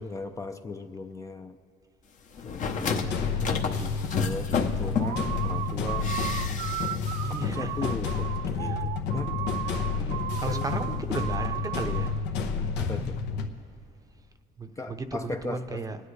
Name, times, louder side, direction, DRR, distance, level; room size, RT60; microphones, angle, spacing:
voice 1, 0.0-1.6 2.4-3.2 3.5-6.1 7.2-9.3 10.5-10.7 12.8-13.2 14.8-15.8, left 3 dB, 20° left, 6 dB, 0.4 m, -37 dB
sound 1, 2.3-5.4 6.0-7.1 7.3-7.4, left 5 dB, 50° left, 0.9 m, -31 dB
voice 2, 2.7-3.2 3.7-3.8 7.2-7.9 8.6-8.8 9.6-12.2 14.6-16.0, right 3 dB, 20° right, 9 dB, 0.7 m, -36 dB
sound 2, 2.9-13.5, left 5 dB, 85° left, 1.0 m, -30 dB
sound 3, 5.0-12.2, right 14 dB, 80° right, 0.4 m, -36 dB
27.0 x 9.9 x 3.3 m, 2.5 s
cardioid pair, 110°, 17 cm